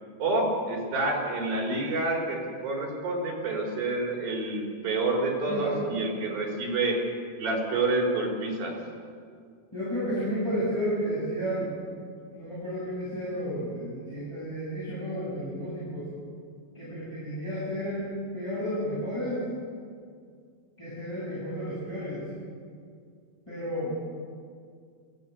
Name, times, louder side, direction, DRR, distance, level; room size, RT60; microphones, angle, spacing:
voice 1, 0.2-7.0 7.4-8.7, right 2 dB, 60° right, -1 dB, 5.8 m, -28 dB
voice 2, 5.5-5.8 9.7-11.7 12.3-16.1 16.7-18.1 18.3-19.4 20.8-22.2 23.5-24.0, equal, 5° left, -9 dB, 7.3 m, -32 dB
23.0 x 15.5 x 8.4 m, 2.2 s
omnidirectional pair, 4.7 m